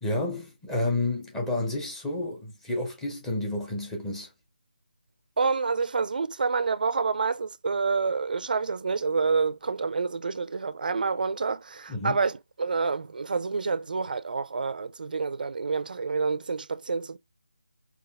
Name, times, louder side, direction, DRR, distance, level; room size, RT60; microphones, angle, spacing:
voice 1, 0.0-4.3 11.9-12.2, left 2 dB, 5° left, 0.7 m, -30 dB
voice 2, 5.4-17.2, right 4 dB, 60° right, 0.4 m, -28 dB
4.1 x 2.4 x 3.3 m
figure-of-eight pair, 165°, 5 cm